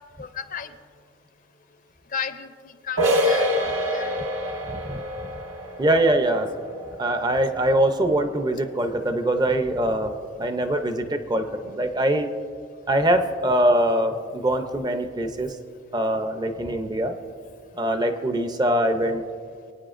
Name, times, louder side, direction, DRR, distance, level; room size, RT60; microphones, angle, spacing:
voice 1, 0.2-0.7 2.1-4.1, left 7 dB, 45° left, 9 dB, 0.5 m, -34 dB
sound 1, 3.0-8.5, equal, 80° right, 2.0 m, -27 dB
voice 2, 4.7-5.0 5.8-6.5 7.0-12.3 12.9-15.6 15.9-17.1 17.7-19.2, right 1 dB, 20° right, 7 dB, 0.6 m, -23 dB
24.5 x 9.1 x 2.5 m, 2.2 s
head